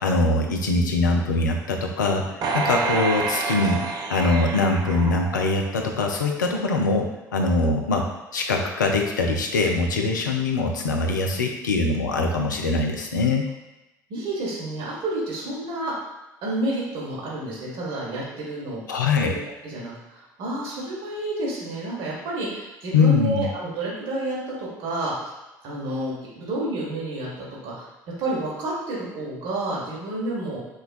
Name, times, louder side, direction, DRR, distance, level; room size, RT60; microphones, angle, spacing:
voice 1, 0.0-2.3 2.5-8.1 8.3-13.4 18.9-19.3 22.9-23.5, left 3 dB, 80° left, 2 dB, 0.4 m, -22 dB
sound 1, 2.4-5.9 6.3-6.4, right 4 dB, 40° right, 0.5 m, -28 dB
voice 2, 14.1-15.9 16.4-18.8 19.2-25.3 25.6-27.9 28.2-30.6, right 2 dB, 60° right, -5 dB, 1.5 m, -30 dB
6.2 x 2.2 x 2.4 m, 0.98 s
figure-of-eight pair, 55°, 10 cm